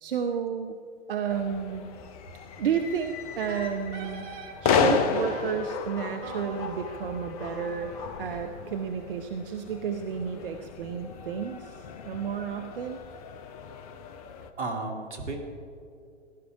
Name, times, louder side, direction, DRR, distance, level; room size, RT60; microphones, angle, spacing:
voice 1, 0.0-0.8 1.1-1.9 2.6-4.3 4.6-7.9 8.2-13.0, right 7 dB, 45° right, 6 dB, 0.7 m, -31 dB
sound 1, 1.3-14.5, left 6 dB, 30° left, 0.7 m, -33 dB
Wind instrument woodwind instrument, 3.5-4.6 5.1-5.6 6.2-9.2, right 4 dB, 25° right, 1.3 m, -44 dB
voice 2, 14.6-15.4, right 3 dB, 65° right, 3 dB, 2.2 m, -34 dB
16.0 x 11.0 x 4.7 m, 2.5 s
figure-of-eight pair, 115°, 37 cm